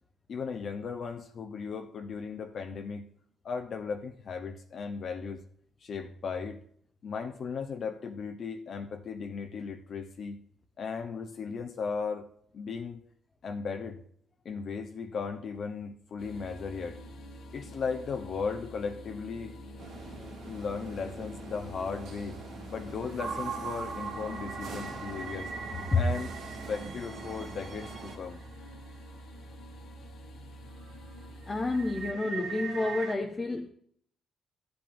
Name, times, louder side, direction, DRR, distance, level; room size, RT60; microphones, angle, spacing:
voice 1, 0.3-3.0 3.4-5.4 5.8-6.6 7.0-10.4 10.8-12.3 12.5-13.0 13.4-14.0 14.4-17.0 17.5-19.6 20.5-22.4 22.7-25.5 25.9-26.3 26.7-28.4, left 5 dB, 55° left, 4 dB, 0.8 m, -36 dB
sound 1, 16.2-32.1, equal, 75° left, 1.5 m, -47 dB
sound 2, 19.8-28.2, right 3 dB, 80° right, 1.9 m, -44 dB
sound 3, 23.2-29.0 29.5-29.6 30.1-30.4 30.7-33.2, right 5 dB, 65° right, 0.9 m, -40 dB
voice 2, 31.5-33.7, left 3 dB, 25° left, 3 dB, 0.8 m, -29 dB
12.5 x 7.8 x 2.6 m, 0.64 s
cardioid pair, 90°, 0 cm